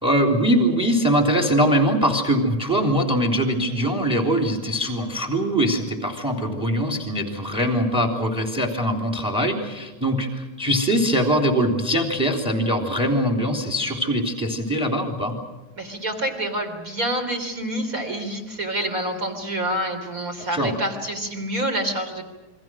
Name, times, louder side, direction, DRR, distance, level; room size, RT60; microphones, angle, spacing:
voice 1, 0.0-15.3 20.5-20.7, equal, ahead, 3 dB, 2.9 m, -22 dB
voice 2, 15.8-22.2, right 1 dB, 25° right, 4 dB, 3.5 m, -27 dB
28.0 x 23.5 x 6.3 m, 1.1 s
omnidirectional pair, 3.7 m